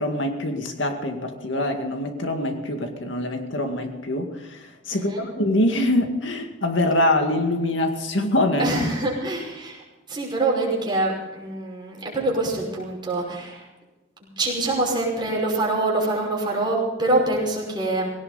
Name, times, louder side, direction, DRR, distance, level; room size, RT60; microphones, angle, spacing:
voice 1, 0.0-8.7, left 1 dB, 70° left, 4 dB, 2.1 m, -24 dB
voice 2, 4.9-5.2 8.6-13.7 14.2-18.1, right 2 dB, 25° right, -3 dB, 5.6 m, -25 dB
18.5 x 17.5 x 4.1 m, 1.1 s
head